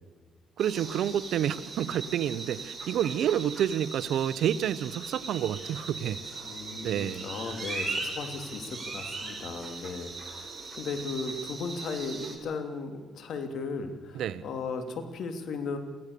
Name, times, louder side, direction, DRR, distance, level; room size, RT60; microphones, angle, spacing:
sound 1, 0.6-12.4, right 3 dB, 25° right, 6.3 m, -39 dB
voice 1, 0.6-6.2 6.8-7.3 14.1-14.4, right 10 dB, 75° right, 16 dB, 0.8 m, -29 dB
voice 2, 6.4-15.8, left 4 dB, 70° left, 7 dB, 3.0 m, -36 dB
24.0 x 16.0 x 6.9 m, 1.5 s
cardioid pair, 90°, 0 cm